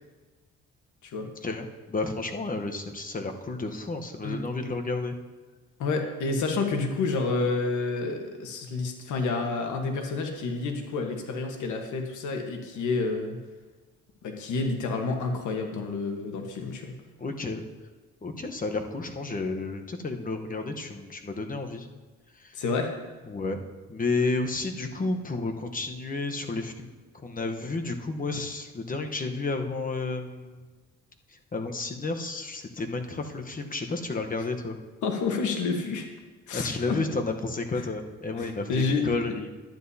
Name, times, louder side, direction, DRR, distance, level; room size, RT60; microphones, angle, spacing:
voice 1, 1.4-5.2 17.2-17.6 18.2-21.9 23.3-23.6 23.9-26.9 27.2-30.6 31.5-34.8 36.5-39.5, left 3 dB, 30° left, 5 dB, 1.0 m, -31 dB
voice 2, 5.8-13.4 14.2-16.9 22.5-22.9 35.0-36.1 36.5-37.0 37.7-37.8 38.3-39.3, left 4 dB, 75° left, 4 dB, 1.3 m, -29 dB
12.0 x 9.9 x 2.8 m, 1.3 s
cardioid pair, 90°, 30 cm